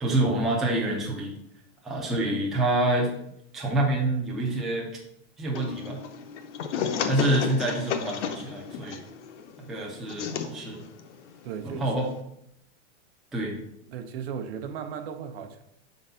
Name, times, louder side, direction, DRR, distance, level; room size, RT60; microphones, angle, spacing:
voice 1, 0.0-1.3 1.8-3.1 3.5-4.9 5.4-6.0 7.1-9.0 9.7-10.8 11.6-12.1 13.3-13.6, right 1 dB, ahead, -3 dB, 0.4 m, -27 dB
sound 1, 5.5-12.2, left 7 dB, 75° left, 0.8 m, -33 dB
voice 2, 11.4-11.9 13.9-15.6, right 7 dB, 55° right, 7 dB, 0.8 m, -36 dB
4.6 x 3.9 x 5.5 m, 0.77 s
supercardioid pair, 160°, 35 cm